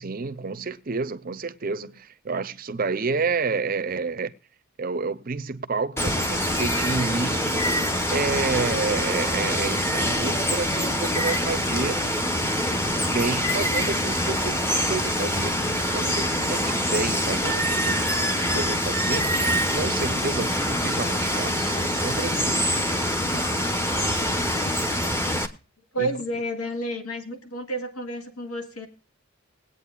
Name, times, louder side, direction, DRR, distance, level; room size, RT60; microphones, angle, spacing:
voice 1, 0.0-4.3 4.8-7.7 8.1-12.0 12.4-12.8 13.1-15.6 15.9-19.3 19.7-22.9 26.0-26.1, right 4 dB, 40° right, 0.6 m, -30 dB
Water, 6.0-25.5, equal, 10° left, 0.8 m, -25 dB
voice 2, 25.9-28.9, right 1 dB, 85° left, 2.0 m, -30 dB
21.0 x 8.7 x 2.3 m
head